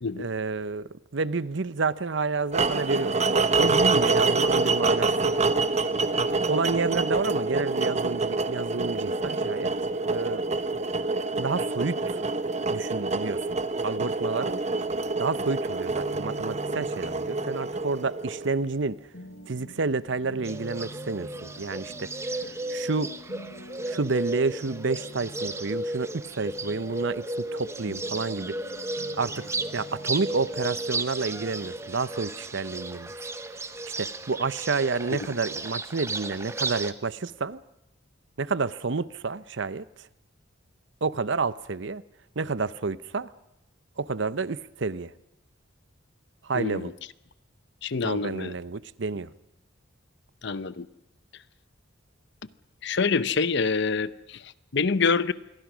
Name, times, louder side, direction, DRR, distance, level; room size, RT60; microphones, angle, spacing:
voice 1, 0.2-5.4 6.5-9.7 10.1-10.4 11.4-12.2 12.7-13.4 13.8-14.6 15.2-19.0 19.5-22.1 22.7-23.1 23.9-28.5 29.2-33.1 34.0-37.6 38.4-39.8 41.0-42.0 42.4-43.3 44.0-45.1 46.4-46.9 48.0-49.3, right 4 dB, 65° right, 0.8 m, -29 dB
sound 1, 2.5-18.6, right 3 dB, 35° right, 0.9 m, -26 dB
sound 2, 15.9-35.4, equal, 75° left, 3.7 m, -47 dB
Bird, 20.4-36.9, right 2 dB, 15° right, 1.0 m, -34 dB
voice 2, 46.5-46.9 47.8-48.5 50.4-50.9 52.8-55.3, left 4 dB, 60° left, 0.8 m, -26 dB
26.5 x 22.5 x 6.2 m
head